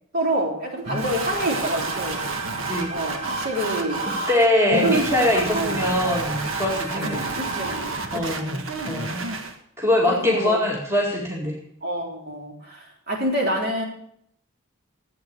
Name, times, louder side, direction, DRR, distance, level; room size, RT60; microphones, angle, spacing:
voice 1, 0.1-2.2 2.9-4.1 4.7-5.0 5.3-5.9 7.0-8.6 8.8-9.4 10.1-10.6 11.8-13.8, equal, 50° right, -1 dB, 3.7 m, -27 dB
sound 1, 0.9-7.8, right 4 dB, 35° right, 2.1 m, -36 dB
sound 2, 0.9-9.6, right 3 dB, 80° right, 1.5 m, -30 dB
voice 2, 4.3-7.2 8.1-8.6 8.8-9.2 9.8-11.6, left 1 dB, 15° right, -3 dB, 2.3 m, -22 dB
13.5 x 8.5 x 6.8 m, 0.71 s
head